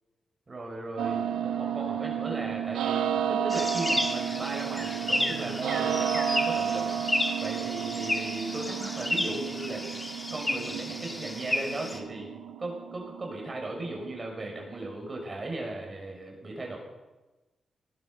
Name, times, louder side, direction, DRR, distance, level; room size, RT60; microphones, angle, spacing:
voice 1, 0.5-6.8 7.4-9.8 10.3-12.3 12.6-16.8, right 2 dB, 40° right, 0 dB, 6.3 m, -37 dB
sound 1, 1.0-14.9, right 9 dB, 90° right, 0.7 m, -32 dB
sound 2, 3.5-12.0, left 1 dB, 15° left, 2.4 m, -32 dB
19.0 x 12.0 x 5.7 m, 1.1 s
cardioid pair, 60°, 0 cm